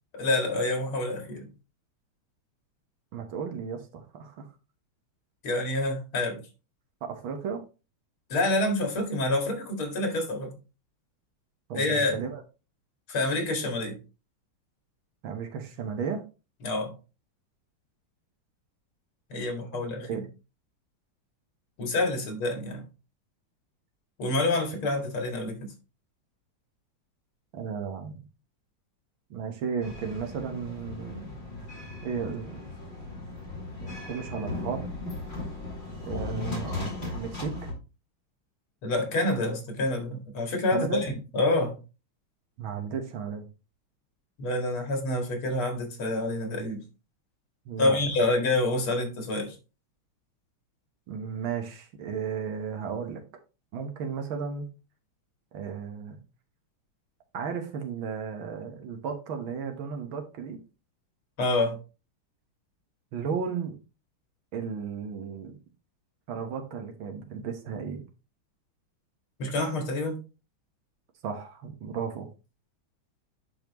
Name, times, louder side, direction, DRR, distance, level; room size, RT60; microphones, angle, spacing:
voice 1, 0.1-1.5 5.4-6.4 8.3-10.5 11.7-12.2 13.1-14.0 16.6-16.9 19.3-20.2 21.8-22.8 24.2-25.7 36.3-36.6 38.8-41.8 44.4-46.8 47.8-49.6 61.4-61.8 69.4-70.2, left 2 dB, 80° left, 2.7 m, -27 dB
voice 2, 3.1-4.5 7.0-7.6 11.7-12.4 15.2-16.2 19.7-19.8 20.1-20.2 27.5-28.2 29.3-31.3 32.0-32.7 33.8-34.9 36.0-37.7 40.7-41.1 42.6-43.5 47.7-48.0 51.1-53.2 53.7-54.7 55.5-56.2 57.3-60.6 63.1-63.8 64.5-65.6 66.3-68.0 71.2-72.3, right 6 dB, 75° right, 1.9 m, -34 dB
sound 1, 29.8-37.7, left 2 dB, 25° left, 2.8 m, -37 dB
10.5 x 4.3 x 2.9 m
omnidirectional pair, 2.3 m